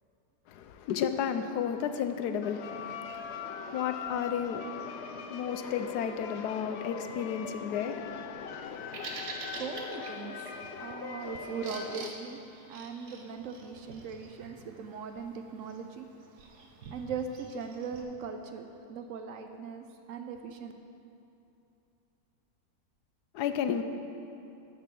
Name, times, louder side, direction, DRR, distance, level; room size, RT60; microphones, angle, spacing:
voice 1, 0.5-9.6 23.3-23.8, left 8 dB, 90° left, 9 dB, 1.2 m, -34 dB
sound 1, 2.4-12.1, left 6 dB, 65° left, 0.6 m, -41 dB
Bird vocalization bird call bird song, 8.6-18.0, right 3 dB, 85° right, 1.5 m, -47 dB
voice 2, 9.5-16.1 16.9-20.7, right 6 dB, 65° right, 6 dB, 0.9 m, -40 dB
12.0 x 4.5 x 7.5 m, 2.9 s
omnidirectional pair, 1.7 m